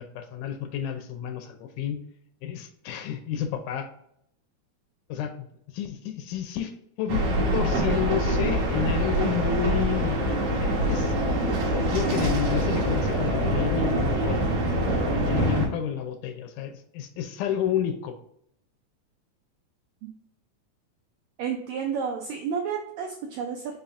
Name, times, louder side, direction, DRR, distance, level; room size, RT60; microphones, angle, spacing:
voice 1, 0.0-2.0 2.4-3.9 5.1-5.5 5.7-6.7 7.0-7.3 7.5-10.3 10.5-11.1 11.9-14.5 15.1-18.2, left 9 dB, 80° left, 7 dB, 2.0 m, -30 dB
sound 1, 7.1-15.7, right 1 dB, 65° right, 1.7 m, -24 dB
voice 2, 21.4-23.7, right 6 dB, 85° right, 1 dB, 1.6 m, -31 dB
5.5 x 3.6 x 2.4 m, 0.73 s
omnidirectional pair, 3.8 m